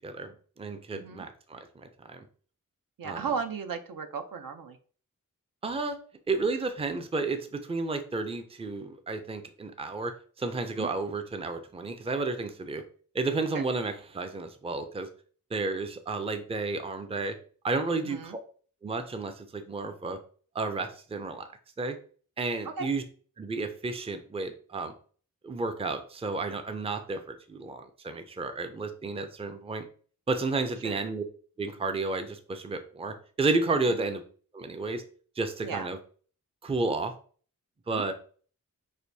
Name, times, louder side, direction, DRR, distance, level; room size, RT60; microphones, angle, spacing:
voice 1, 0.0-2.3 3.0-3.3 5.6-6.0 6.3-10.1 10.4-12.8 13.1-15.1 15.5-17.3 17.6-18.4 18.8-20.2 20.5-21.5 21.8-22.0 22.4-23.0 23.4-24.9 25.4-29.8 30.3-31.2 31.6-34.2 34.5-35.0 35.4-36.0 36.6-37.1 37.9-38.1, right 3 dB, 20° right, 8 dB, 0.4 m, -32 dB
voice 2, 0.9-1.3 3.0-4.8 10.8-10.9 13.5-13.6 18.0-18.4 22.6-22.9 30.8-31.0 33.9-34.0 35.6-35.9 37.9-38.1, right 6 dB, 75° right, 7 dB, 0.6 m, -35 dB
6.2 x 2.6 x 2.7 m, 0.43 s
wide cardioid pair, 115°, 34 cm